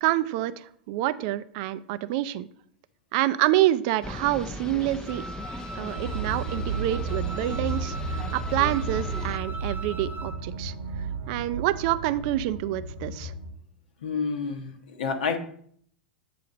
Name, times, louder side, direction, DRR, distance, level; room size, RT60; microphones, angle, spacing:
voice 1, 0.0-2.5 3.1-5.2 5.7-10.7 11.3-13.3, right 14 dB, 55° right, 15 dB, 0.4 m, -27 dB
sound 1, 4.0-9.4, left 1 dB, 15° left, 0.5 m, -38 dB
Wind instrument woodwind instrument, 5.1-10.4, right 1 dB, 35° right, 1.0 m, -40 dB
sound 2, 5.9-13.5, right 3 dB, 80° right, 1.1 m, -33 dB
voice 2, 14.0-15.4, left 5 dB, 70° left, 5 dB, 0.8 m, -29 dB
8.4 x 2.8 x 5.1 m, 0.63 s
figure-of-eight pair, 90°, 5 cm